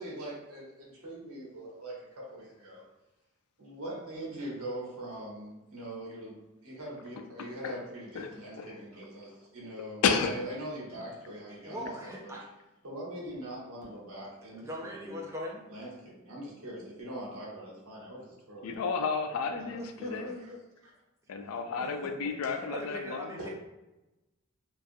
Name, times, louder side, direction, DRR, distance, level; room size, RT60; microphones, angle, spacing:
voice 1, 0.0-2.8 3.6-11.9 12.2-12.4 12.8-15.3 15.7-18.8 19.6-20.5 20.8-20.9 22.4-22.7 23.4-23.5, right 1 dB, 80° right, -4 dB, 1.0 m, -42 dB
voice 2, 7.4-7.7 8.1-8.3 8.6-8.8 10.0-10.3 18.6-20.4 21.3-23.5, left 5 dB, 80° left, 6 dB, 0.3 m, -32 dB
voice 3, 11.6-12.5 14.5-15.6 19.8-20.6 21.5-22.1 22.7-23.5, equal, 15° right, -2 dB, 0.4 m, -41 dB
2.6 x 2.3 x 2.5 m, 1.0 s
head